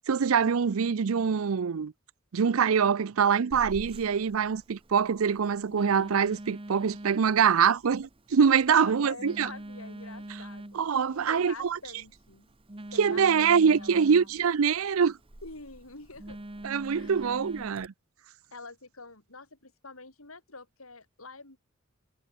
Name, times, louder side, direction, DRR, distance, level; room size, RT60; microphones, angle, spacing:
voice 1, 0.1-1.9 2.3-9.5 10.7-11.8 13.0-15.2 16.6-17.9, right 6 dB, 80° right, 0.5 m, -24 dB
Telephone, 3.5-17.9, right 1 dB, 25° right, 1.3 m, -45 dB
voice 2, 8.7-10.8 11.1-12.5 12.9-14.3 15.4-16.4 16.9-17.2 18.5-21.6, left 3 dB, 90° left, 6.5 m, -46 dB
head